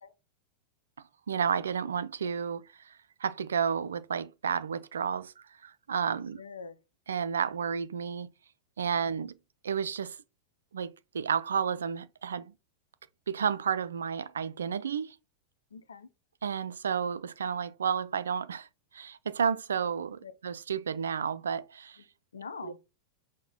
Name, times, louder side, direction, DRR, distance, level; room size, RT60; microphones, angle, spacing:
voice 1, 1.3-2.9 3.2-5.3 5.6-6.4 7.1-8.3 8.8-9.3 9.6-10.2 10.7-12.5 13.3-15.2 16.4-18.7 18.9-22.0 22.6-22.8, right 7 dB, 70° right, 0.3 m, -31 dB
voice 2, 6.4-6.8 15.7-16.1 20.2-20.3 22.3-22.8, left 5 dB, 70° left, 0.6 m, -43 dB
5.9 x 2.1 x 4.1 m
figure-of-eight pair, 90°, 0 cm